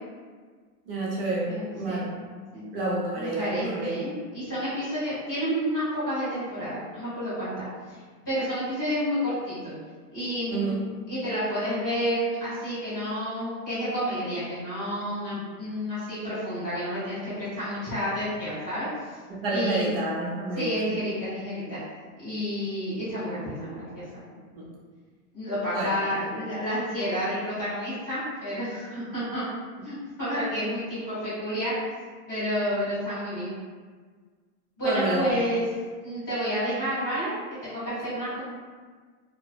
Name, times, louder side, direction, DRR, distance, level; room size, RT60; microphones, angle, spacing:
voice 1, 0.9-2.1 2.7-3.9 10.5-10.8 19.3-20.9 24.5-24.7 25.7-25.9 28.9-29.0 34.8-35.3, right 2 dB, 40° right, -4 dB, 0.5 m, -29 dB
voice 2, 1.5-2.0 2.5-2.7 3.1-8.0 8.2-9.7 10.1-10.7 11.1-18.9 19.5-19.9 20.6-21.8 22.2-24.0 25.3-29.4 29.8-31.7 32.3-33.5 34.8-35.6 36.0-38.4, equal, 15° left, -18 dB, 0.3 m, -30 dB
2.4 x 2.1 x 2.4 m, 1.5 s
supercardioid pair, 170°, 47 cm